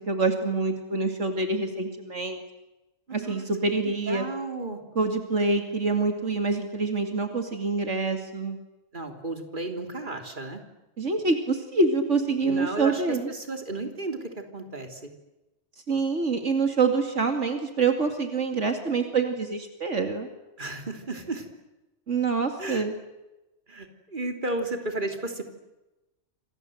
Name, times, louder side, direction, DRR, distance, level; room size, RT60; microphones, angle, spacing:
voice 1, 0.1-2.4 3.1-4.2 5.0-8.6 11.0-13.2 15.9-20.3 22.1-22.9, right 3 dB, 75° right, 6 dB, 2.7 m, -26 dB
voice 2, 3.1-3.5 4.1-4.8 8.9-10.6 12.5-15.1 20.6-21.5 22.6-22.9 23.7-25.4, right 2 dB, 40° right, 5 dB, 3.4 m, -33 dB
28.0 x 27.0 x 7.9 m, 1.0 s
omnidirectional pair, 1.3 m